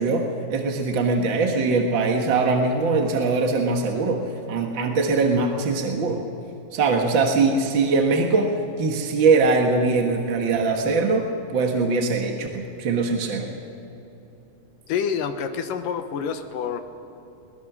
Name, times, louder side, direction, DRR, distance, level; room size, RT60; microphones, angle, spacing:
voice 1, 0.0-4.2 4.5-6.2 6.7-8.5 8.8-13.5, right 3 dB, 50° right, 2 dB, 1.5 m, -22 dB
voice 2, 14.9-16.8, left 7 dB, 75° left, 7 dB, 2.7 m, -27 dB
22.0 x 19.5 x 6.1 m, 3.0 s
omnidirectional pair, 4.1 m